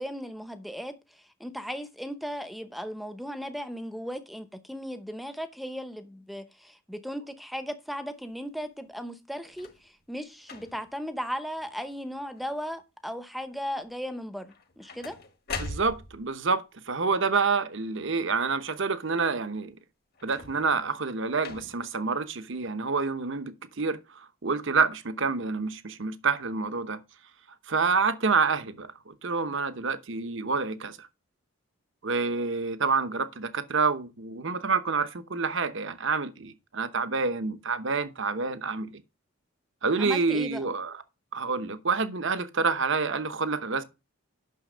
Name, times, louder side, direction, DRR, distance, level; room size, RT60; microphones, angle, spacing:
voice 1, 0.0-15.2 40.0-40.7, equal, ahead, 0.8 m, -37 dB
sound 1, 9.4-9.9 10.4-11.0 11.6-11.9 12.2-12.8 14.5-16.3 20.1-20.8 21.4-22.0 22.8-22.9, left 3 dB, 45° left, 1.4 m, -41 dB
voice 2, 15.6-19.8 20.2-27.0 27.7-31.0 32.0-39.0 39.8-40.9 41.3-43.8, right 4 dB, 55° right, 0.9 m, -28 dB
9.5 x 6.3 x 5.0 m
head